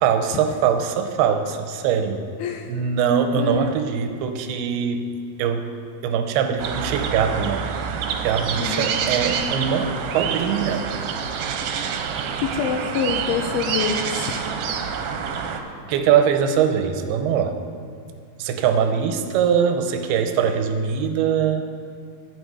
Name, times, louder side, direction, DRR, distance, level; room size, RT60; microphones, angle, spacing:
voice 1, 0.0-2.2 2.7-5.1 5.4-5.7 6.0-7.7 8.2-10.9 15.9-17.6 18.4-21.6, right 7 dB, 90° right, 7 dB, 2.7 m, -22 dB
voice 2, 2.4-2.7 3.4-3.8 8.6-9.0 12.4-14.5, left 7 dB, 90° left, 3 dB, 2.6 m, -26 dB
sound 1, 6.6-15.6, right 6 dB, 75° right, 2.1 m, -27 dB
13.5 x 8.9 x 4.9 m, 2.3 s
omnidirectional pair, 4.5 m